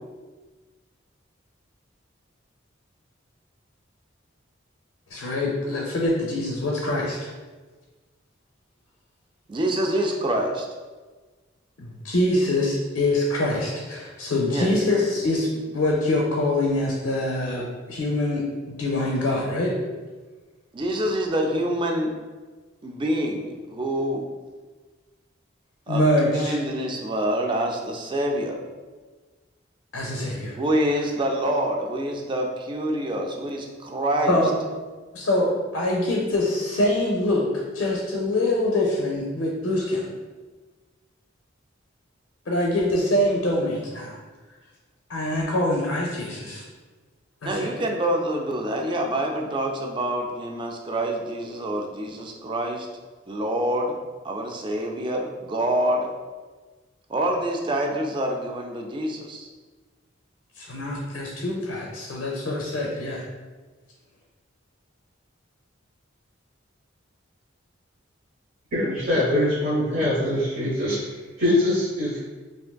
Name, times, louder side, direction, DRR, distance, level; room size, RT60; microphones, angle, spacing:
voice 1, 5.1-7.2 11.8-19.7 25.9-26.6 29.9-30.6 34.3-34.5 35.1-40.1 42.5-44.2 45.1-46.6 47.4-47.7 60.6-63.2, left 1 dB, 90° left, -2 dB, 0.5 m, -24 dB
voice 2, 9.5-10.7 14.5-14.7 20.7-22.1 22.8-24.2 25.9-26.0 26.3-28.6 30.6-34.4 47.4-52.9 53.3-54.0 54.2-56.1 57.1-59.5, right 1 dB, 25° right, 2 dB, 0.3 m, -26 dB
voice 3, 68.7-71.0 71.4-72.2, left 1 dB, 55° right, -7 dB, 0.8 m, -23 dB
3.5 x 2.5 x 2.2 m, 1.3 s
head